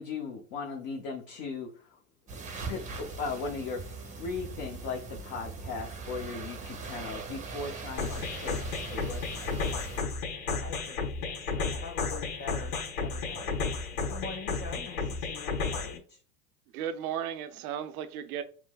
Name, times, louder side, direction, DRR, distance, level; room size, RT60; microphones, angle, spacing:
voice 1, 0.0-2.0 2.7-9.7 13.9-14.0, left 4 dB, 50° left, 0.9 m, -38 dB
sound 1, 2.3-10.0, right 4 dB, 15° right, 0.7 m, -41 dB
sound 2, 8.0-16.0, left 4 dB, 70° left, 1.3 m, -33 dB
voice 2, 10.6-16.2, left 5 dB, 25° left, 0.4 m, -45 dB
voice 3, 16.7-18.4, right 9 dB, 70° right, 0.6 m, -35 dB
5.9 x 2.1 x 2.3 m
hypercardioid pair, 105°, 45 cm